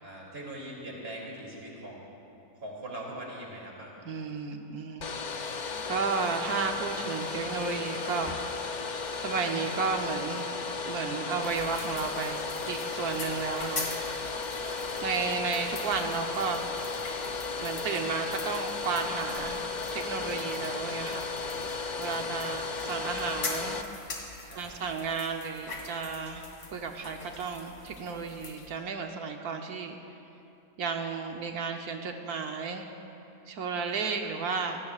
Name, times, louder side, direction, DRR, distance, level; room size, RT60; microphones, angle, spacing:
voice 1, 0.0-2.1 2.6-4.0 14.6-14.9 22.0-22.5 24.4-24.8, right 1 dB, 40° right, -3 dB, 3.1 m, -42 dB
voice 2, 4.0-5.1 5.9-8.4 9.2-10.5 10.9-12.4 12.7-14.3 15.0-16.8 17.6-19.6 19.9-21.3 22.0-23.8 24.5-30.0 30.8-32.8 33.5-34.8, right 5 dB, 75° right, 3 dB, 1.4 m, -33 dB
Domestic sounds home sounds, 5.0-23.8, left 4 dB, 45° left, 0.6 m, -35 dB
sound 1, 11.4-28.7, left 3 dB, 85° left, 2.5 m, -43 dB
26.5 x 17.0 x 2.4 m, 2.8 s
omnidirectional pair, 1.6 m